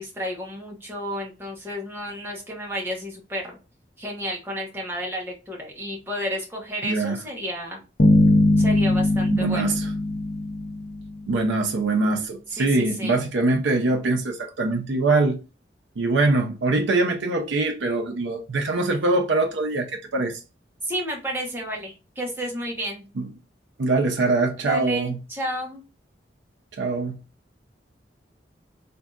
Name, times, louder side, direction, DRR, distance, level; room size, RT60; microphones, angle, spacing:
voice 1, 0.0-3.6 4.0-7.8 8.6-9.8 12.5-13.2 20.8-23.0 24.6-25.8, equal, 10° right, 1.1 m, -31 dB
voice 2, 6.8-7.2 9.3-9.9 11.3-15.4 16.0-20.4 23.2-23.3 23.8-25.2 26.8-27.2, right 3 dB, 90° right, 0.6 m, -23 dB
sound 1, 8.0-11.4, left 1 dB, 55° left, 0.6 m, -20 dB
3.6 x 2.6 x 2.3 m
head